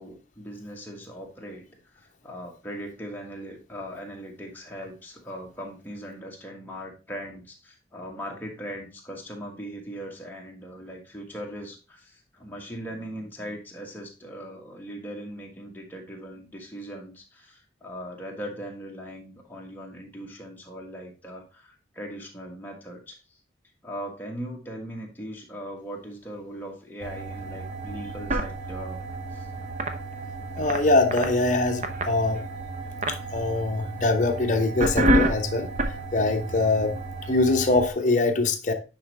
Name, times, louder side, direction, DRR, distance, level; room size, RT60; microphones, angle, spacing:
voice 1, 0.0-23.4 23.8-29.0 29.3-29.5, equal, 10° left, 1.4 m, -39 dB
sound 1, 27.0-37.9, right 1 dB, 40° right, 0.7 m, -30 dB
voice 2, 30.6-32.4 33.1-37.0 37.3-38.7, left 2 dB, 40° left, 0.9 m, -23 dB
9.7 x 4.0 x 3.2 m
head